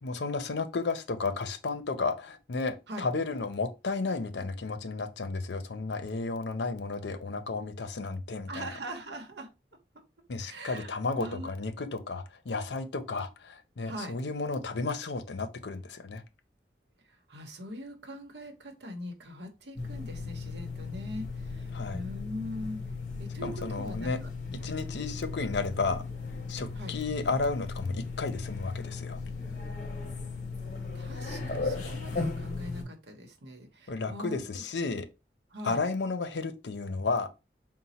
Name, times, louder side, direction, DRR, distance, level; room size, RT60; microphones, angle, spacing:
voice 1, 0.0-8.7 10.3-16.2 21.7-22.0 23.4-24.2 24.5-26.0 26.5-29.2 33.9-35.1 35.6-37.3, left 3 dB, 80° left, 0.6 m, -33 dB
voice 2, 8.5-9.5 10.4-11.5 13.9-14.2 17.3-22.8 23.2-24.3 24.6-24.7 26.8-27.0 30.9-34.6 35.5-35.8, equal, 75° right, 0.9 m, -41 dB
sound 1, 19.8-32.8, left 4 dB, 45° left, 0.8 m, -37 dB
4.1 x 2.1 x 4.1 m
head